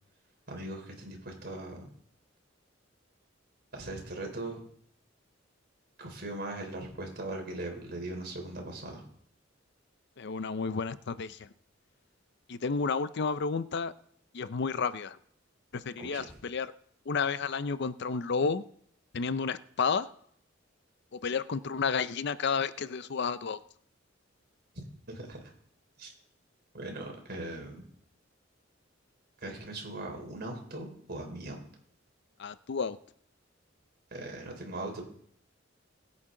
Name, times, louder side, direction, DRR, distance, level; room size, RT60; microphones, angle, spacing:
voice 1, 0.5-1.9 3.7-4.6 6.0-9.0 16.0-16.3 25.1-25.4 26.0-26.1 26.7-27.8 29.4-31.6 34.1-35.0, right 2 dB, 55° right, 2 dB, 3.7 m, -39 dB
voice 2, 10.2-11.5 12.5-13.9 14.3-15.2 15.7-16.7 17.1-18.6 19.1-20.1 21.1-23.6 32.4-33.0, left 5 dB, 60° left, 14 dB, 0.5 m, -31 dB
21.0 x 8.6 x 3.8 m, 0.65 s
head